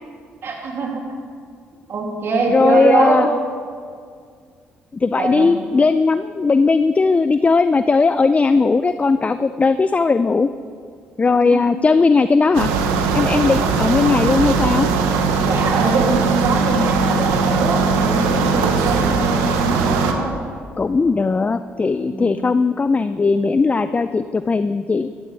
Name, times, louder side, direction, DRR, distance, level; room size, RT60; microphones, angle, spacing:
voice 1, 0.4-1.0 1.9-3.3 5.2-5.5 11.4-11.6 15.4-20.4 22.0-22.5, right 3 dB, 55° right, 0 dB, 2.7 m, -23 dB
voice 2, 2.5-3.3 4.9-10.5 11.2-12.7 13.1-14.9 20.8-25.1, left 4 dB, 25° left, 12 dB, 0.4 m, -17 dB
sound 1, 12.5-20.1, right 4 dB, 85° right, 1.0 m, -19 dB
15.5 x 13.5 x 3.4 m, 2.1 s
supercardioid pair, 60°, 5 cm